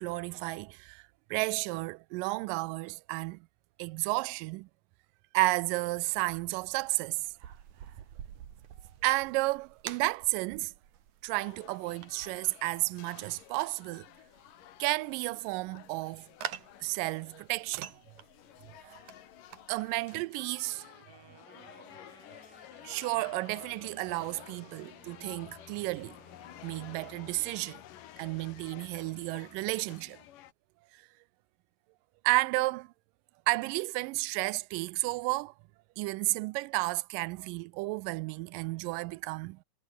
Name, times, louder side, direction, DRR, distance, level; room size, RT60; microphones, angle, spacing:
voice 1, 0.0-3.5 3.8-4.7 5.3-7.3 9.0-10.7 11.2-14.1 14.8-16.3 16.8-17.9 18.8-19.0 19.7-20.9 21.5-21.8 22.8-26.2 26.6-27.8 28.2-30.2 30.9-31.0 32.2-32.9 33.5-35.5 36.0-39.6, right 22 dB, 85° right, 2.2 m, -32 dB
sound 1, 5.8-19.9, right 10 dB, 65° right, 3.2 m, -48 dB
sound 2, 11.3-30.5, left 12 dB, 80° left, 3.0 m, -53 dB
Wind instrument woodwind instrument, 20.6-27.7, right 3 dB, 30° right, 4.3 m, -59 dB
omnidirectional pair, 3.8 m